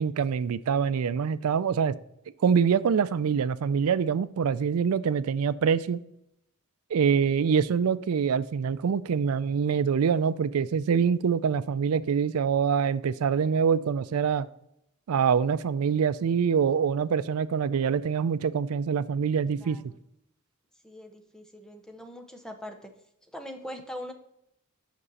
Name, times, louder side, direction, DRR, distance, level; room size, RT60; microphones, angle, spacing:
voice 1, 0.0-2.0 2.4-6.0 6.9-14.5 15.1-19.8, right 6 dB, 90° right, 0.4 m, -25 dB
voice 2, 19.5-20.0 20.8-22.9 23.2-24.1, equal, 5° left, 0.7 m, -42 dB
6.1 x 5.5 x 4.1 m
head